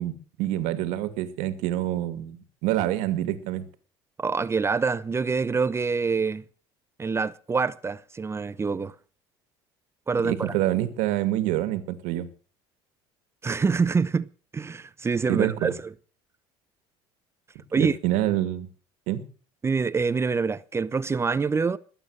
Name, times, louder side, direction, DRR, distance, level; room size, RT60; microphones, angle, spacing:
voice 1, 0.0-3.7 10.2-12.3 15.3-15.7 17.8-18.7 19.1-19.2, right 13 dB, 75° right, 2.3 m, -27 dB
voice 2, 4.2-6.4 7.0-8.9 10.1-10.5 13.4-14.3 14.5-15.8 17.7-18.0 19.6-21.8, right 5 dB, 20° right, 0.7 m, -25 dB
21.0 x 9.0 x 6.5 m
supercardioid pair, 100°, 12 cm